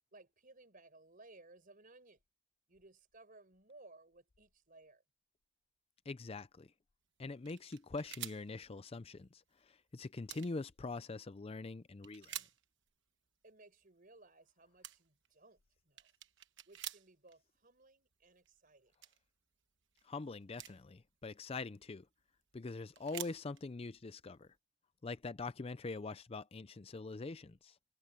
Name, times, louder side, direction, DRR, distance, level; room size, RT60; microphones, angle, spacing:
voice 1, 0.1-2.2 2.7-5.0 13.4-16.1 16.6-18.9, right 2 dB, 40° right, 5.0 m, -61 dB
voice 2, 6.1-6.7 7.2-12.4 20.0-22.1 22.5-24.6 25.0-27.8, left 3 dB, 25° left, 0.4 m, -44 dB
sound 1, 7.4-8.9 9.1-9.2 9.5-9.7 10.1-10.6 11.3-11.6 12.0-12.9 13.5-13.8 14.5-14.6 14.8-15.3 15.7-17.4 17.8-17.9 18.1-19.2 19.8-20.9 21.5-22.4 22.7-24.6, right 13 dB, 60° right, 1.2 m, -49 dB
head